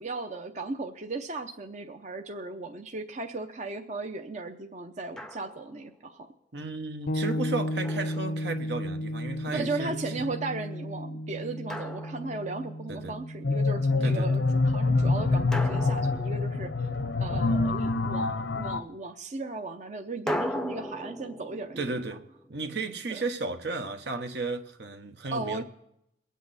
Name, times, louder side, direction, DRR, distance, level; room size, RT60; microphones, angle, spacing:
voice 1, 0.0-6.3 9.5-16.7 17.2-21.9 23.1-23.2 25.3-25.6, right 3 dB, 40° right, 0.6 m, -36 dB
Drum, 5.2-5.8 7.8-8.9 11.7-12.9 15.5-17.2 20.3-23.2, equal, 5° left, 0.5 m, -38 dB
voice 2, 6.5-10.3 12.9-13.2 14.0-14.3 21.8-25.6, right 3 dB, 75° right, 1.1 m, -34 dB
sound 1, 7.1-16.7, equal, 55° left, 0.4 m, -35 dB
sound 2, 13.4-18.8, left 3 dB, 80° left, 0.7 m, -26 dB
23.0 x 8.3 x 4.1 m
head